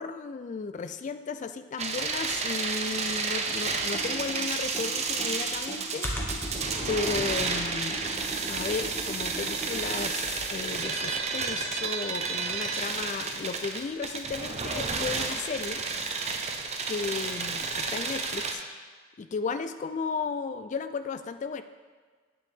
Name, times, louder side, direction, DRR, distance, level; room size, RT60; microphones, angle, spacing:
voice 1, 0.0-6.1 6.9-8.1 8.5-15.8 16.9-18.6 19.2-21.6, left 5 dB, 40° left, 11 dB, 0.3 m, -34 dB
sound 1, 1.8-18.5, right 4 dB, 35° right, 0.8 m, -31 dB
Computer keyboard, 3.8-10.7, right 1 dB, 10° left, 1.3 m, -38 dB
10.0 x 9.1 x 3.5 m, 1.5 s
head